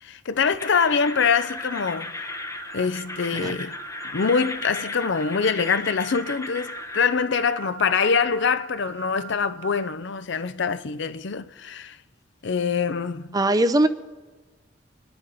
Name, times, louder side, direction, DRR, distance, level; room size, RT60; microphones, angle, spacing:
voice 1, 0.0-2.3 2.7-3.8 4.1-12.0 12.4-13.3, left 5 dB, 60° left, 0.6 m, -24 dB
sound 1, 0.6-7.0, left 3 dB, 15° left, 0.7 m, -35 dB
Wind instrument woodwind instrument, 2.2-10.0, right 16 dB, 40° right, 1.3 m, -43 dB
voice 2, 13.3-13.9, right 1 dB, 20° right, 0.5 m, -20 dB
25.5 x 10.5 x 4.1 m
head